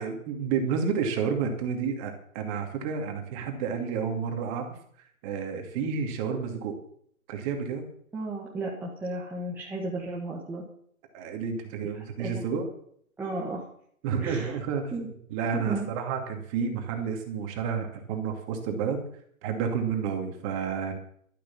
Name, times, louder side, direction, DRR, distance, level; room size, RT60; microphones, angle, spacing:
voice 1, 0.0-4.7 5.0-6.8 7.3-7.9 11.1-12.7 14.0-19.0 19.4-20.9, right 6 dB, 25° right, 4 dB, 2.4 m, -30 dB
voice 2, 8.1-10.6 12.2-12.4 13.2-13.6 14.2-14.6 14.9-15.1 15.5-15.9, right 2 dB, 5° right, -5 dB, 1.4 m, -33 dB
12.5 x 11.5 x 7.1 m, 0.64 s
hypercardioid pair, 145°, 43 cm